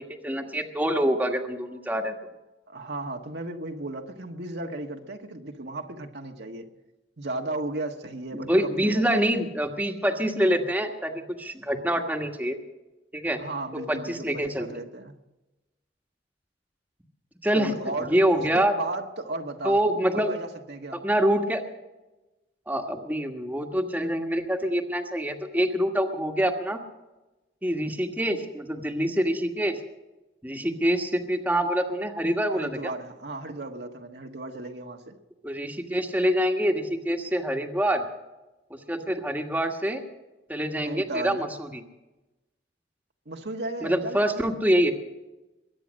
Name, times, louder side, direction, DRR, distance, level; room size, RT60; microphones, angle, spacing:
voice 1, 0.0-2.1 8.3-12.6 13.1-13.4 13.9-14.7 17.4-17.7 18.0-18.7 19.6-20.4 21.0-21.6 22.7-26.8 27.6-29.8 30.4-32.9 35.4-38.0 38.9-40.0 40.5-41.8 43.8-44.9, equal, 10° right, 2 dB, 1.5 m, -25 dB
voice 2, 2.7-6.7 7.2-9.4 13.4-15.2 17.5-18.2 18.5-19.8 20.1-21.0 32.5-35.2 40.8-41.4 43.2-44.6, right 2 dB, 65° right, 3 dB, 1.5 m, -35 dB
22.5 x 9.3 x 6.4 m, 1.0 s
head